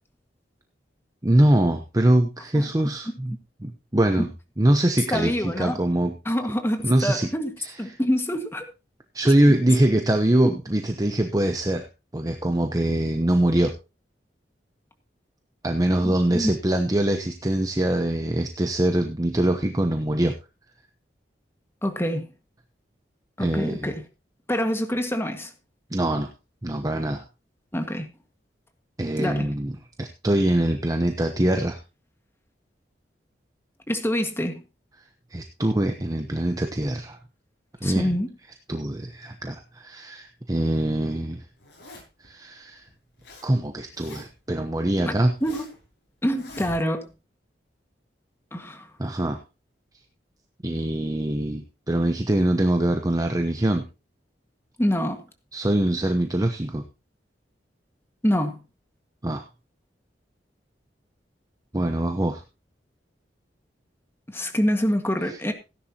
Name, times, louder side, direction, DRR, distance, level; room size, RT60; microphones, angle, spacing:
voice 1, 1.2-3.3 3.6-4.3 4.6-6.1 6.8-7.3 7.6-7.7 9.1-11.9 12.1-13.7 15.6-20.3 23.4-23.9 25.9-26.3 26.6-27.2 29.0-31.8 35.3-37.2 37.8-38.1 38.7-41.4 42.2-42.8 43.4-45.3 49.0-49.4 50.6-53.8 55.5-56.8 59.2-59.4 61.7-62.4, right 1 dB, 20° right, 1.0 m, -23 dB
voice 2, 5.1-5.8 6.3-7.5 7.8-8.7 16.0-16.5 21.8-22.3 23.4-24.0 24.5-25.5 27.7-28.1 29.2-29.5 33.9-34.6 37.8-38.3 45.0-45.2 45.4-45.7 46.2-47.1 48.5-48.9 54.8-55.2 58.2-58.6 64.3-65.5, equal, 15° left, 1.8 m, -26 dB
Zipper (clothing), 41.6-42.3 42.9-43.5 43.7-44.5 45.0-45.8 46.3-47.1, left 1 dB, 80° left, 6.7 m, -44 dB
16.5 x 10.5 x 2.9 m
head